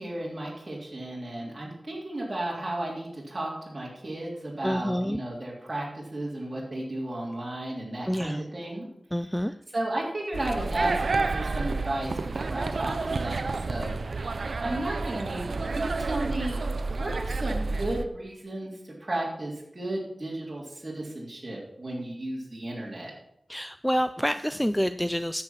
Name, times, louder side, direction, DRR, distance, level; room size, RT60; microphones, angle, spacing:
voice 1, 0.0-8.9 9.7-13.9 14.3-16.6 16.9-18.7 19.0-23.1, right 1 dB, 35° right, -4 dB, 3.3 m, -34 dB
voice 2, 4.6-5.2 8.1-8.4 9.1-9.5 23.5-25.4, equal, 5° left, 11 dB, 0.4 m, -27 dB
sound 1, 10.3-18.1, right 3 dB, 75° right, 0.6 m, -30 dB
10.5 x 7.6 x 5.9 m, 0.78 s
wide cardioid pair, 65°, 0 cm